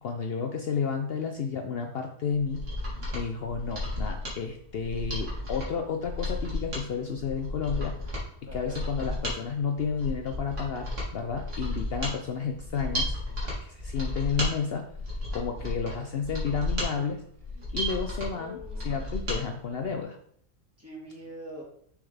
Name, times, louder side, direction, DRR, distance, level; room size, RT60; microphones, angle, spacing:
voice 1, 0.0-2.6 3.1-8.0 8.5-14.9 15.3-17.2 17.7-18.6 18.8-20.2, left 6 dB, 60° left, 5 dB, 0.8 m, -31 dB
Mechanisms, 2.3-19.4 19.7-19.8, left 1 dB, 75° right, 2.7 m, -33 dB
voice 2, 8.4-8.9 15.8-15.9 17.5-17.7 18.0-19.1 20.8-21.6, equal, 10° right, -3 dB, 2.0 m, -44 dB
6.7 x 6.4 x 3.4 m, 0.64 s
omnidirectional pair, 1.2 m